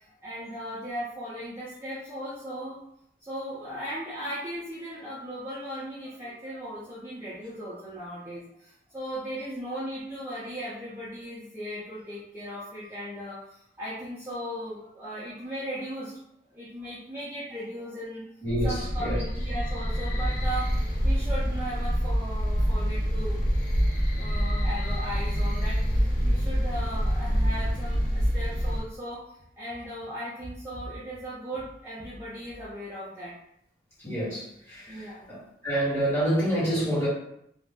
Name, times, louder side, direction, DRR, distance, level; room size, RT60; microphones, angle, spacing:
voice 1, 0.2-2.8 3.2-16.2 16.5-18.2 18.6-20.7 21.0-23.4 24.2-29.2 29.6-33.4 34.9-35.3, equal, 15° right, -9 dB, 0.5 m, -37 dB
voice 2, 18.4-19.2 34.0-35.0 35.3-35.4 35.6-37.1, right 1 dB, 15° left, -10 dB, 1.4 m, -27 dB
sound 1, 18.5-28.8, equal, 45° left, 0.5 m, -26 dB
2.5 x 2.0 x 3.5 m, 0.74 s
head